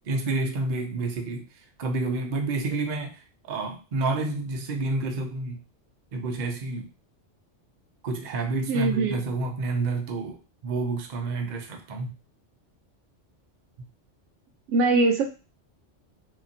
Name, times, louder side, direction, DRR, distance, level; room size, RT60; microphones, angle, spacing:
voice 1, 0.1-1.5 1.8-5.6 6.1-6.9 8.0-12.2, right 3 dB, 50° right, 3 dB, 0.6 m, -29 dB
voice 2, 8.7-9.2 14.7-15.2, right 3 dB, 80° right, 4 dB, 0.9 m, -22 dB
2.9 x 2.4 x 2.6 m, 0.33 s
omnidirectional pair, 1.2 m